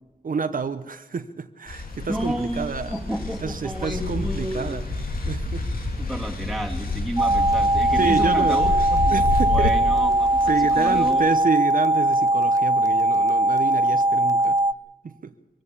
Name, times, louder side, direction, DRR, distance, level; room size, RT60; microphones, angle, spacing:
voice 1, 0.2-2.9 3.4-4.8 5.2-5.7 8.0-8.6 9.1-9.8 10.5-14.6 15.0-15.3, right 5 dB, 65° right, 10 dB, 0.9 m, -28 dB
sound 1, 1.7-11.1, left 2 dB, 80° left, 3.2 m, -29 dB
voice 2, 2.1-4.8 6.0-11.2, equal, ahead, 0 dB, 2.7 m, -31 dB
sound 2, 7.2-14.7, right 1 dB, 20° right, 0.6 m, -20 dB
23.0 x 15.5 x 8.4 m, 1.1 s
wide cardioid pair, 80°, 15 cm